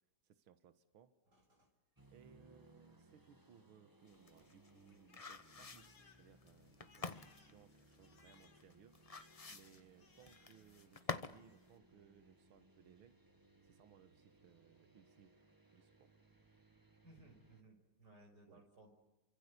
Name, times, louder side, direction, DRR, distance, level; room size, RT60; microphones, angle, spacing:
voice 1, 0.2-1.2 2.1-9.0 9.5-13.1 13.6-15.3 15.7-16.1 18.5-18.6, right 8 dB, 85° right, 10 dB, 2.1 m, -65 dB
voice 2, 1.3-1.7 17.0-18.9, right 1 dB, 50° right, 4 dB, 6.5 m, -63 dB
sound 1, 2.0-17.6, right 1 dB, 10° right, 1.6 m, -67 dB
Crying sobbing, 4.0-10.8 11.1-11.8, left 4 dB, 70° left, 3.9 m, -70 dB
sound 2, 4.1-11.4 11.7-11.8, left 4 dB, 55° left, 0.4 m, -48 dB
29.0 x 25.0 x 8.3 m, 1.1 s
omnidirectional pair, 2.3 m